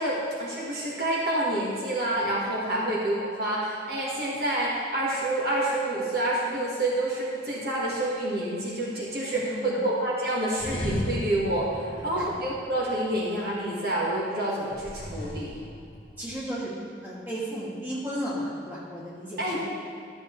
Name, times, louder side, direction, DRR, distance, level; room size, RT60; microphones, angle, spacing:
voice 1, 0.0-15.6 19.4-19.7, right 1 dB, 60° right, -5 dB, 1.6 m, -28 dB
voice 2, 9.3-9.8 11.9-12.3 16.2-16.7 17.0-19.7, equal, 10° right, -9 dB, 2.3 m, -34 dB
sound 1, 10.6-13.2 14.7-16.5, left 1 dB, 30° left, 0.8 m, -36 dB
12.5 x 7.0 x 3.2 m, 2.4 s
head